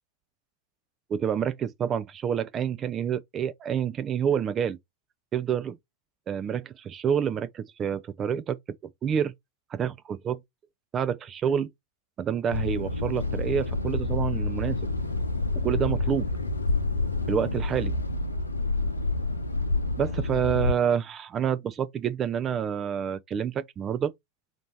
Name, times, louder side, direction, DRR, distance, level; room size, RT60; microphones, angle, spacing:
voice 1, 1.1-4.8 5.3-5.8 6.3-8.6 8.8-9.3 9.7-10.4 10.9-11.7 12.2-14.8 15.6-16.3 17.3-17.9 20.0-24.1, right 8 dB, 25° right, 0.4 m, -28 dB
sound 1, 12.5-20.7, left 2 dB, 80° left, 0.7 m, -28 dB
4.3 x 2.6 x 4.4 m
figure-of-eight pair, 90°, 0 cm